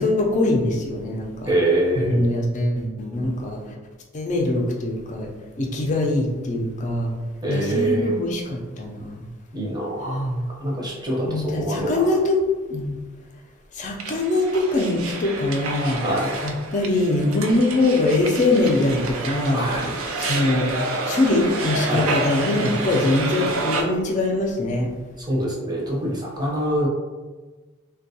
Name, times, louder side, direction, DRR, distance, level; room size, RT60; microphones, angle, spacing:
voice 1, 0.0-1.5 2.0-3.6 4.1-5.3 5.6-7.1 7.5-9.0 10.0-10.4 11.3-12.4 12.7-12.9 13.8-16.0 16.4-19.6 20.2-20.7 21.1-24.9, left 2 dB, 40° left, 2 dB, 0.4 m, -22 dB
voice 2, 1.5-2.2 7.4-8.2 9.5-10.2 10.6-12.2 16.0-16.3 19.5-20.0 21.9-22.2 25.2-26.9, right 1 dB, 20° right, -3 dB, 0.6 m, -24 dB
sound 1, 14.0-23.8, right 3 dB, 85° right, 0.4 m, -29 dB
3.4 x 2.2 x 2.7 m, 1.3 s
head